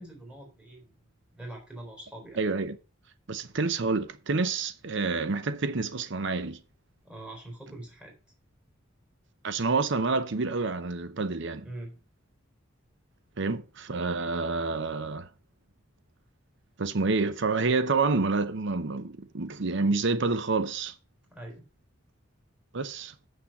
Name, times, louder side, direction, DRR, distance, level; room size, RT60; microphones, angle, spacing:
voice 1, 0.0-2.4 7.0-8.1 11.6-12.0 18.1-18.2 21.3-21.6, right 1 dB, 5° right, 3.7 m, -44 dB
voice 2, 2.4-2.8 3.3-6.6 9.4-11.6 13.4-15.3 16.8-20.9 22.7-23.1, right 3 dB, 60° right, 0.7 m, -28 dB
7.4 x 6.3 x 5.9 m
head